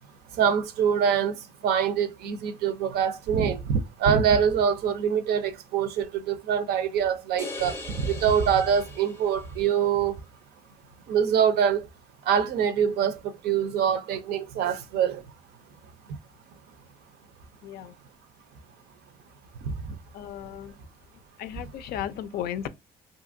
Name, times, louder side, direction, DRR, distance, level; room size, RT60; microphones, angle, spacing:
voice 1, 0.4-1.4 1.6-10.1 11.1-11.8 12.3-15.2 19.6-19.7, right 7 dB, 70° right, 0.5 m, -24 dB
sound 1, 7.4-9.7, left 2 dB, 15° left, 0.6 m, -40 dB
voice 2, 17.6-18.0 20.1-20.7 21.4-22.7, left 10 dB, 65° left, 0.4 m, -35 dB
2.7 x 2.5 x 2.5 m
cardioid pair, 110°, 17 cm